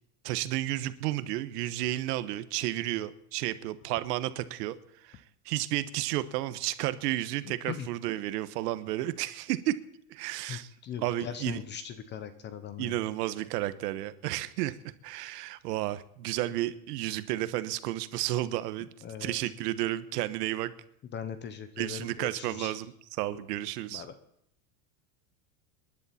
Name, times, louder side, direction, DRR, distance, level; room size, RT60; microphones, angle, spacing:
voice 1, 0.2-9.7 10.1-10.7 11.0-11.6 12.8-14.8 15.0-18.9 19.2-20.7 21.8-24.0, right 15 dB, 80° right, 13 dB, 1.2 m, -32 dB
voice 2, 10.5-12.9 19.0-19.3 21.1-22.7 23.9-24.1, left 8 dB, 25° left, 11 dB, 0.7 m, -40 dB
28.5 x 11.0 x 4.3 m, 0.75 s
supercardioid pair, 160°, 47 cm